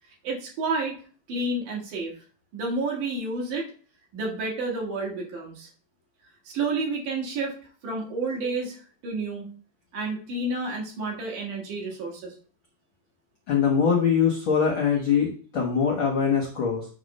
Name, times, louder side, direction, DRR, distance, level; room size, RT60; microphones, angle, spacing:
voice 1, 0.2-1.0 1.3-2.2 2.5-3.7 4.1-5.7 6.4-7.5 7.8-9.5 9.9-12.3, right 3 dB, 65° right, -2 dB, 3.2 m, -30 dB
voice 2, 13.5-16.9, left 6 dB, 65° left, -2 dB, 1.3 m, -23 dB
7.9 x 3.6 x 5.3 m, 0.42 s
omnidirectional pair, 4.1 m